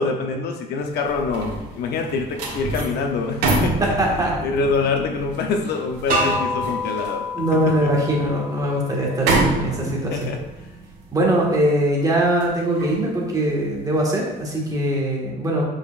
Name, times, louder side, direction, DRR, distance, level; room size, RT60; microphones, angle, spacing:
voice 1, 0.0-4.0 4.4-7.2 7.5-7.9 10.1-10.4, left 4 dB, 70° left, 4 dB, 0.8 m, -25 dB
sound 1, 0.9-14.2 14.6-14.8, right 2 dB, 80° right, 1.7 m, -29 dB
voice 2, 3.8-4.3 7.4-10.2 11.1-15.6, right 1 dB, 20° right, -2 dB, 1.7 m, -21 dB
sound 2, 6.1-9.0, left 1 dB, 55° right, 1.6 m, -27 dB
7.4 x 5.1 x 2.5 m, 0.99 s
cardioid pair, 110°, 17 cm